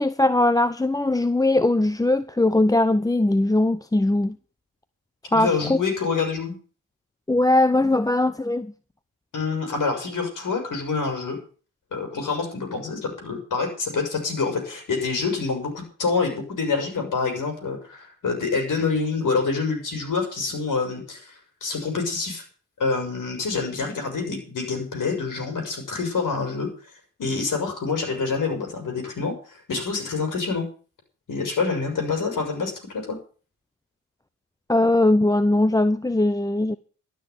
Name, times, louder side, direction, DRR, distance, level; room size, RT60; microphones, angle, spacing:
voice 1, 0.0-4.4 5.3-5.8 7.3-8.7 34.7-36.8, left 2 dB, 10° left, 0.7 m, -20 dB
voice 2, 5.3-6.6 9.3-11.4 11.9-22.4 22.8-26.7 27.2-30.6 31.3-33.2, left 4 dB, 60° left, 6.2 m, -27 dB
12.5 x 6.8 x 9.7 m
supercardioid pair, 55°, 35 cm